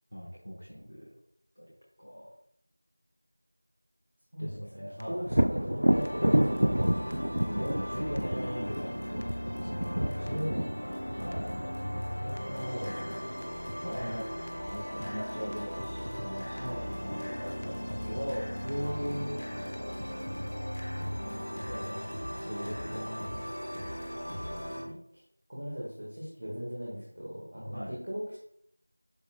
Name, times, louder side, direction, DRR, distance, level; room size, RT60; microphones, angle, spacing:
voice 1, 0.1-1.1 1.6-1.7 2.0-2.3 4.4-5.4 7.3-9.8 11.2-11.5 13.8-14.3 14.6-18.5 20.1-20.5 21.6-23.3 23.8-23.9 24.6-24.8 27.7-27.9, equal, 90° left, -6 dB, 4.4 m, -40 dB
voice 2, 4.3-6.7 10.2-10.8 12.2-13.2 16.6-16.8 18.6-19.3 25.1-25.2 25.5-28.4, equal, 15° right, -6 dB, 1.5 m, -37 dB
sound 1, 4.5-4.6 5.0-5.1 5.3-5.8 6.1-6.2 6.6-6.7 7.1-7.2 7.4-7.9 8.2-8.3 8.7-8.8 9.2-9.3 9.5-10.0 10.3-10.4 10.8-10.9 11.3-12.1 12.4-12.5 12.9-13.0 13.4-13.5 13.7-14.2 14.5-14.6 15.0-15.1 15.5-15.6 15.8-16.3 16.6-16.7 17.1-17.2 17.6-17.7 17.9-18.4 18.7-18.8 19.2-19.3 19.7-19.8 20.0-20.5 20.8-20.9, equal, 55° left, 1.2 m, -43 dB
Thunder, 5.3-13.0 16.6-16.7 17.2-18.1, equal, 30° right, 0.4 m, -30 dB
sound 2, 5.9-24.8, equal, 15° left, 1.3 m, -37 dB
12.5 x 10.5 x 2.2 m, 0.67 s
figure-of-eight pair, 180°, 0 cm